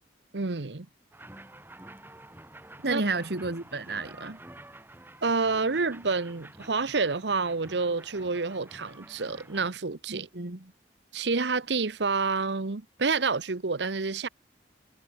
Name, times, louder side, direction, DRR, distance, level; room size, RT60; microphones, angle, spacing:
voice 1, 0.3-0.9 2.8-3.0 5.2-10.3 11.1-14.3, right 4 dB, 85° right, 1.0 m, -28 dB
sound 1, 1.1-9.7, right 1 dB, 10° right, 3.5 m, -49 dB
voice 2, 2.8-4.4 10.1-10.6, right 3 dB, 65° right, 1.7 m, -31 dB
head